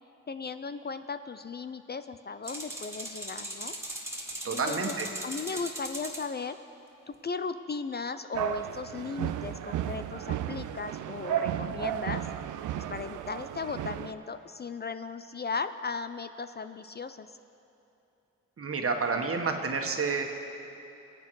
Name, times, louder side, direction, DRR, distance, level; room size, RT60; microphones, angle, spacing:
voice 1, 0.3-3.7 4.5-4.8 5.2-6.6 7.1-12.2 12.7-17.3, left 4 dB, 35° left, 11 dB, 0.5 m, -36 dB
sound 1, 2.5-6.3, right 1 dB, 10° right, 2.3 m, -39 dB
voice 2, 4.4-5.1 5.5-5.6 18.6-20.2, right 4 dB, 45° right, 3 dB, 1.6 m, -29 dB
sound 2, 8.3-14.1, right 11 dB, 80° right, 0.6 m, -33 dB
22.5 x 8.4 x 4.8 m, 2.8 s
supercardioid pair, 55°, 30 cm